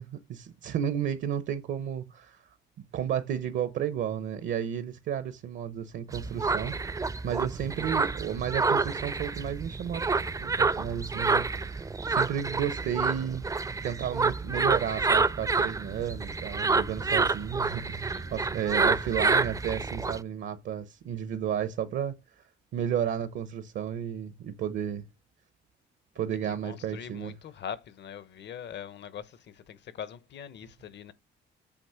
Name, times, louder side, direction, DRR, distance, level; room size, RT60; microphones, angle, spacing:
voice 1, 0.0-2.4 2.9-10.0 10.4-13.5 13.8-22.1 22.7-25.1 26.2-27.3, right 9 dB, 70° right, 0.8 m, -32 dB
sound 1, 6.1-20.2, right 4 dB, 15° right, 0.4 m, -28 dB
voice 2, 18.1-18.5 26.6-31.1, left 8 dB, 60° left, 0.9 m, -42 dB
8.5 x 3.0 x 5.6 m
cardioid pair, 90°, 20 cm